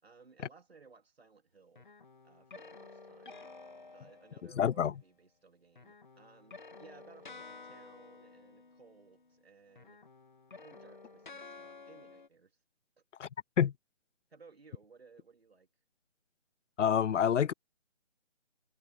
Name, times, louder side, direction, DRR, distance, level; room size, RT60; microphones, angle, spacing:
voice 1, 0.0-1.9 2.2-3.5 3.9-10.0 10.6-12.6 14.3-15.7, right 4 dB, 60° right, 3.0 m, -60 dB
sound 1, 1.8-4.8 5.8-9.4 9.7-12.3, left 3 dB, 40° left, 2.5 m, -52 dB
voice 2, 4.6-4.9 13.2-13.3 13.6-13.7 16.8-17.5, left 8 dB, 90° left, 0.5 m, -27 dB
figure-of-eight pair, 175°, 35 cm